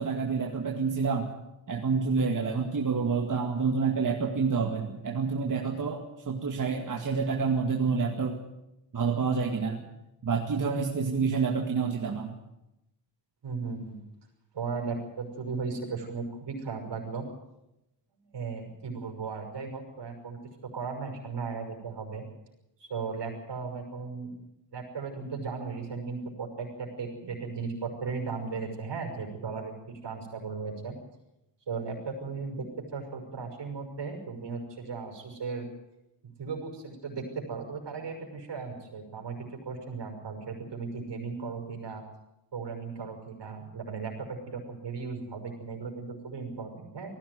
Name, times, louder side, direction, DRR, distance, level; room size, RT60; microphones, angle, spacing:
voice 1, 0.0-1.3 1.7-8.4 8.9-9.8 10.2-12.3, right 5 dB, 45° right, 1 dB, 2.2 m, -28 dB
voice 2, 13.4-14.0 14.5-17.3 18.3-22.2 22.8-24.3 24.7-31.0 31.7-32.7 32.9-35.7 36.2-42.0 42.5-47.1, right 4 dB, 65° right, 2 dB, 5.9 m, -36 dB
19.0 x 15.5 x 9.5 m, 0.91 s
wide cardioid pair, 105°, 44 cm